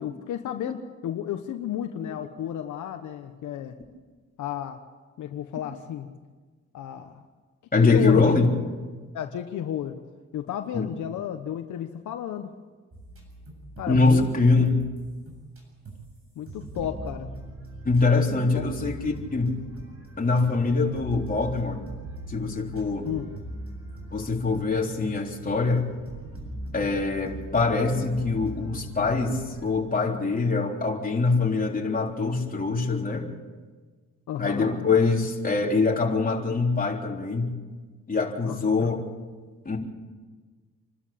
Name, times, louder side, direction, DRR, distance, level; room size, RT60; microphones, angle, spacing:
voice 1, 0.0-3.8 4.4-4.8 5.2-6.1 6.7-7.2 7.8-8.4 9.1-10.0 10.3-12.5 13.8-14.7 16.4-17.3 18.5-18.6 23.0-23.3 34.3-34.7 38.4-38.9, left 10 dB, 75° left, 6 dB, 1.2 m, -32 dB
voice 2, 7.7-8.5 10.7-10.9 13.9-14.9 17.8-19.5 20.2-21.8 22.3-23.1 24.1-25.9 26.7-33.3 34.4-37.5 38.1-39.0 39.7-39.8, left 3 dB, 30° left, -1 dB, 3.8 m, -23 dB
sound 1, 12.9-15.6 15.8-16.1 16.5-29.7, right 1 dB, 45° right, 7.6 m, -40 dB
28.0 x 12.5 x 8.6 m, 1.4 s
cardioid pair, 90°, 30 cm